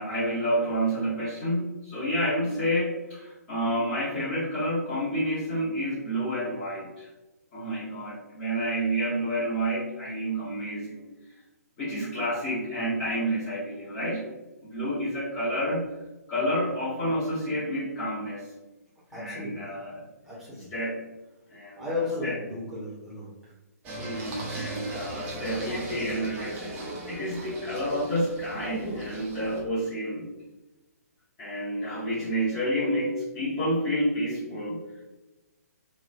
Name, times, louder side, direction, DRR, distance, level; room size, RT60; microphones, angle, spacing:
voice 1, 0.0-7.1 7.5-11.0 11.8-14.2 14.7-15.8 16.3-18.4 19.1-20.0 20.7-21.0 21.5-22.4 23.9-30.3 31.4-34.8, equal, 25° left, -11 dB, 1.0 m, -29 dB
voice 2, 19.1-19.7 20.2-20.7 21.8-23.5, left 3 dB, ahead, -9 dB, 0.9 m, -34 dB
Singing, 23.8-29.6, right 2 dB, 20° right, 0.5 m, -37 dB
3.1 x 2.2 x 2.4 m, 1.1 s
figure-of-eight pair, 130°, 9 cm